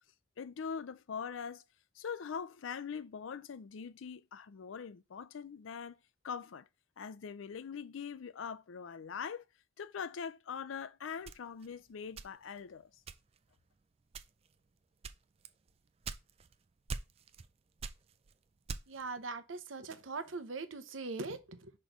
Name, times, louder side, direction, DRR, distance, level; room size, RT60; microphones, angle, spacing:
voice 1, 0.4-1.6 2.0-6.0 6.2-6.7 7.0-9.4 9.8-12.9, left 6 dB, 85° left, 0.5 m, -42 dB
sound 1, 11.2-12.6 13.1-13.5 14.1-14.5 15.0-16.5 16.9-17.5 17.8-19.1, right 4 dB, 30° right, 0.4 m, -43 dB
voice 2, 18.9-21.7, right 3 dB, 90° right, 0.8 m, -41 dB
6.0 x 3.2 x 5.1 m
head